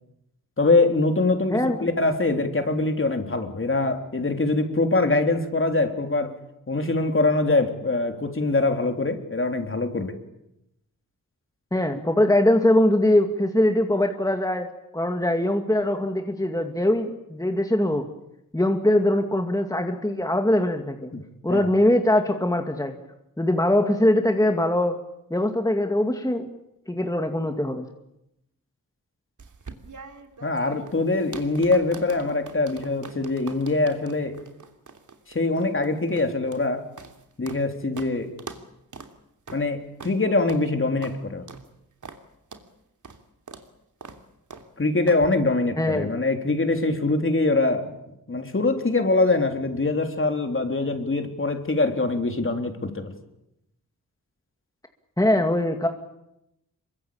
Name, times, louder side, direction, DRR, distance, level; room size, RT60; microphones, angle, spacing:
voice 1, 0.6-6.4 6.7-10.2 21.1-21.2 21.5-21.7 30.4-34.4 35.3-36.9 37.4-38.3 39.5-41.4 44.8-48.0 48.3-53.1, left 3 dB, 40° left, 6 dB, 3.7 m, -23 dB
voice 2, 1.5-1.9 11.7-14.7 14.9-18.0 18.5-21.1 21.4-22.9 23.4-25.0 25.3-26.5 26.9-27.9 45.8-46.1 55.2-55.9, left 1 dB, 10° left, 4 dB, 2.3 m, -22 dB
sound 1, 29.4-37.7 38.0-38.1 38.4-38.6 38.9-39.1 39.5-39.6 40.0-40.2 40.5-40.6 41.0-41.2 41.5-41.7 42.0-42.2 42.5-42.7 43.0-43.2 43.5-43.7 44.0-44.2 44.5-44.7 45.1-45.3, right 4 dB, 60° right, 3.0 m, -42 dB
27.5 x 23.5 x 8.8 m, 0.84 s
wide cardioid pair, 105°, 34 cm